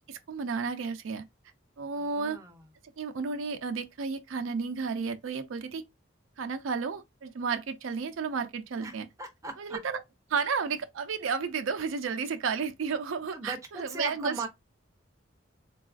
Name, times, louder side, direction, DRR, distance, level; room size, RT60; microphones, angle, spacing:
voice 1, 0.1-1.2 1.8-2.4 3.0-5.8 6.4-9.1 9.6-10.0 10.3-14.3, right 5 dB, 80° right, 0.4 m, -32 dB
voice 2, 1.9-2.6 8.8-9.8 13.3-14.5, right 2 dB, 15° right, 0.5 m, -39 dB
3.9 x 2.3 x 2.3 m
head